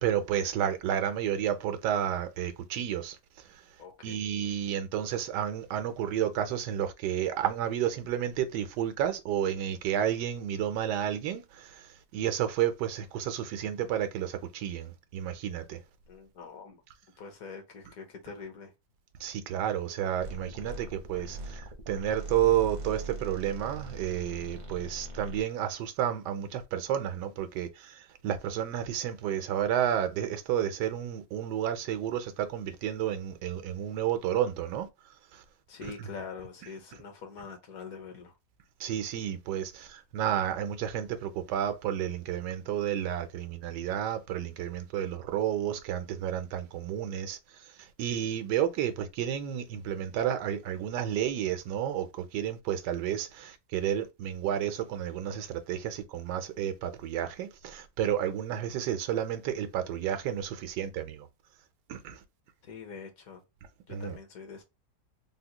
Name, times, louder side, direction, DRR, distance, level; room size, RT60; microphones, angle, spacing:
voice 1, 0.0-3.2 4.0-11.7 12.1-15.8 19.2-28.0 28.2-34.9 35.8-36.1 38.8-47.4 48.0-61.3 61.9-62.2 63.9-64.2, right 10 dB, 90° right, 1.2 m, -31 dB
voice 2, 3.8-4.2 16.1-16.8 17.2-18.7 35.7-38.3 62.6-63.4 63.9-64.6, left 5 dB, 65° left, 1.2 m, -44 dB
sound 1, 20.2-25.4, right 2 dB, 50° right, 0.5 m, -41 dB
3.7 x 2.1 x 2.8 m
omnidirectional pair, 1.8 m